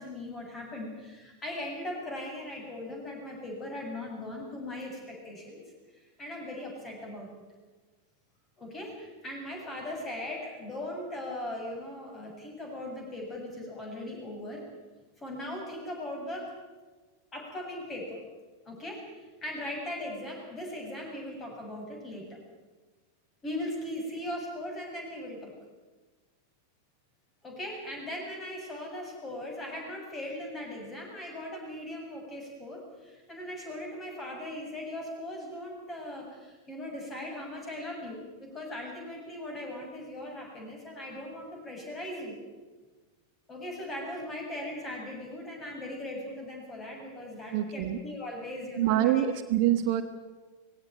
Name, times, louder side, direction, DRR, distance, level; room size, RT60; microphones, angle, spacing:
voice 1, 0.0-5.6 6.2-7.3 8.6-14.6 15.2-16.6 17.3-18.2 18.7-22.4 23.4-25.5 27.4-42.4 43.5-49.2 49.7-49.8, left 1 dB, 20° left, 1 dB, 7.7 m, -39 dB
voice 2, 47.5-48.0 48.8-50.0, right 12 dB, 45° right, 9 dB, 1.2 m, -25 dB
20.0 x 17.0 x 9.1 m, 1.3 s
figure-of-eight pair, 90°, 0 cm